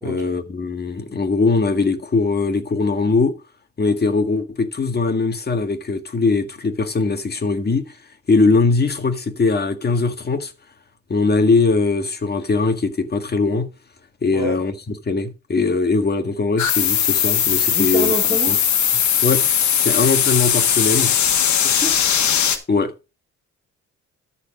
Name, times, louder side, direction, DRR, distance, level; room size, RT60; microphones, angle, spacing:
voice 1, 0.0-3.4 3.8-8.0 8.3-10.5 11.1-13.7 14.2-18.1 18.5-18.6 19.2-21.1 22.7-22.9, left 3 dB, 35° left, 1.8 m, -20 dB
voice 2, 14.3-14.6 17.7-18.6 21.6-22.0, equal, 10° right, 2.9 m, -27 dB
sound 1, 16.6-22.6, left 8 dB, 70° left, 1.7 m, -19 dB
13.0 x 4.5 x 5.0 m
cardioid pair, 90°, 30 cm